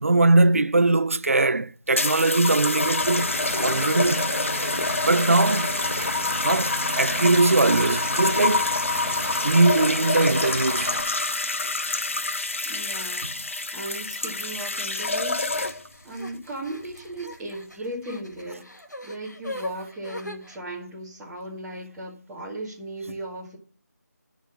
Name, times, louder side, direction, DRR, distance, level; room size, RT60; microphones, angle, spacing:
voice 1, 0.0-4.3 5.1-5.7 6.4-8.7 9.4-10.9 23.1-23.2, right 2 dB, 50° right, 0.6 m, -21 dB
sound 1, 1.9-16.0 16.8-17.2, left 3 dB, 45° left, 1.0 m, -27 dB
Vehicle / Engine, 3.0-11.0, right 2 dB, 25° right, 2.8 m, -34 dB
voice 2, 12.7-15.4 16.0-18.7 19.0-23.6, right 1 dB, 5° right, 2.0 m, -37 dB
sound 2, 15.6-20.6, left 1 dB, 80° left, 2.0 m, -40 dB
9.5 x 5.5 x 7.5 m
figure-of-eight pair, 165°, 9 cm